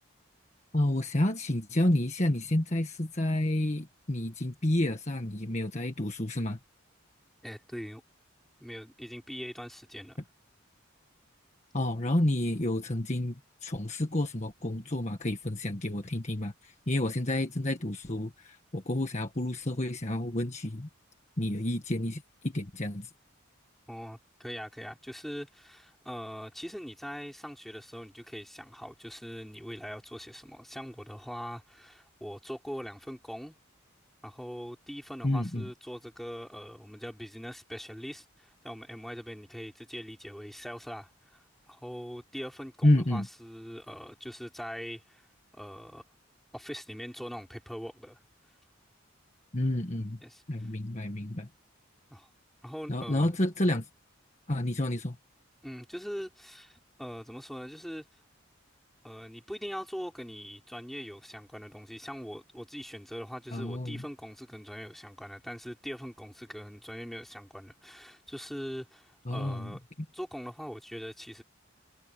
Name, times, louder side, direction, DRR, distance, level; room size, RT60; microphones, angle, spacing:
voice 1, 0.7-6.6 11.7-20.9 21.4-23.1 35.2-35.6 42.8-43.3 49.5-50.2 50.5-51.5 52.9-53.9 54.5-55.2 63.5-64.0 69.3-69.8, left 1 dB, 35° left, 1.6 m, -29 dB
voice 2, 7.4-8.0 8.6-10.2 23.9-33.6 34.2-45.3 45.5-46.1 46.5-48.2 50.2-50.7 52.1-52.3 52.6-53.3 55.6-58.1 59.0-69.8 70.1-71.4, equal, ahead, 4.9 m, -42 dB
head